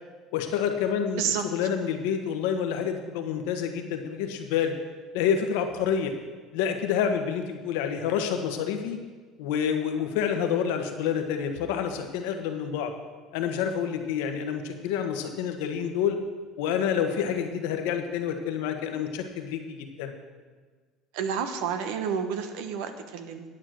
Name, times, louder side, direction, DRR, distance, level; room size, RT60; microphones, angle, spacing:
voice 1, 0.3-4.7 5.1-6.1 6.5-9.0 9.4-12.9 13.3-16.2 16.6-20.1, left 8 dB, 85° left, 5 dB, 1.3 m, -28 dB
voice 2, 21.1-23.4, right 7 dB, 80° right, 8 dB, 1.2 m, -30 dB
10.0 x 8.7 x 6.4 m, 1.4 s
supercardioid pair, 105°, 0 cm